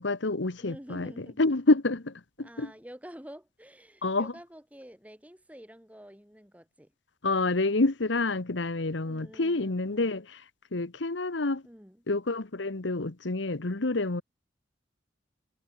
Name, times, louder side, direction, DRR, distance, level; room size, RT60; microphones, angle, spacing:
voice 1, 0.0-1.1 1.4-2.7 4.0-4.3 7.2-10.4 10.7-11.6 12.1-14.2, left 2 dB, 80° left, 1.2 m, -28 dB
voice 2, 0.6-1.5 2.4-6.9 9.0-10.1 11.6-12.0, equal, 10° right, 3.1 m, -48 dB
head